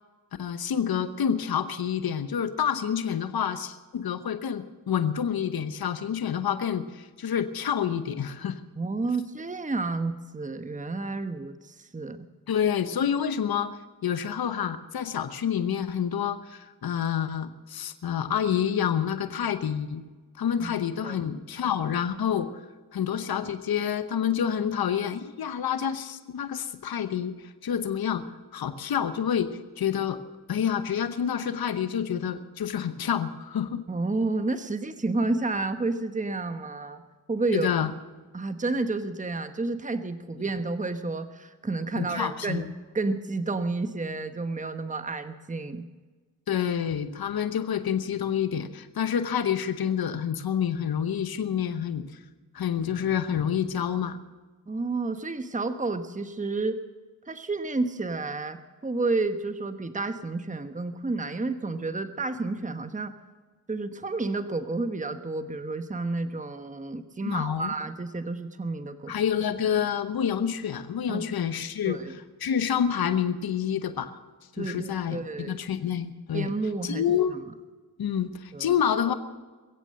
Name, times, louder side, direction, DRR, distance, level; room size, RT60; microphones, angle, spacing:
voice 1, 0.4-8.6 12.5-20.0 20.4-22.6 22.9-30.2 30.5-33.8 37.5-37.9 42.0-42.7 46.5-52.1 52.5-54.2 67.2-67.7 69.1-72.0 72.4-74.1 74.5-76.5 76.8-77.3 78.0-79.1, left 8 dB, 70° left, 10 dB, 1.0 m, -28 dB
voice 2, 8.8-12.3 20.6-20.8 21.0-21.2 33.9-37.0 37.3-37.7 38.3-45.9 54.7-56.8 57.3-63.1 63.7-69.1 71.1-71.3 71.8-72.2 74.6-75.6 76.3-77.4 78.5-78.7, right 3 dB, 20° right, 9 dB, 1.1 m, -30 dB
22.0 x 8.2 x 7.6 m, 1.3 s
cardioid pair, 50°, 39 cm